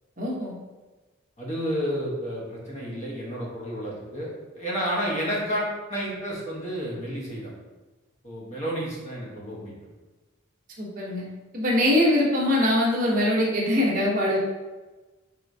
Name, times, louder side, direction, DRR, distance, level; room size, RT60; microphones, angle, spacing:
voice 1, 0.2-0.5 10.8-11.2 11.5-14.4, left 1 dB, 40° right, -3 dB, 0.9 m, -22 dB
voice 2, 1.4-7.5 8.2-9.7, equal, 35° left, -4 dB, 1.0 m, -31 dB
4.7 x 3.1 x 2.7 m, 1.2 s
head